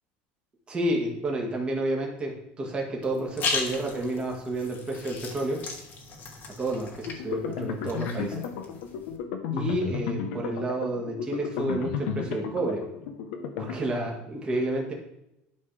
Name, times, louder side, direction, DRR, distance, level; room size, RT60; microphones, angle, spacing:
voice 1, 0.7-5.6 6.6-8.4 9.5-12.8 13.6-14.9, right 1 dB, 20° right, -1 dB, 1.7 m, -30 dB
sound 1, 3.0-9.2, left 4 dB, 40° left, 1.4 m, -36 dB
sound 2, 7.1-13.7, left 7 dB, 80° left, 0.9 m, -33 dB
11.0 x 4.3 x 3.4 m, 0.85 s
cardioid pair, 135°, 5 cm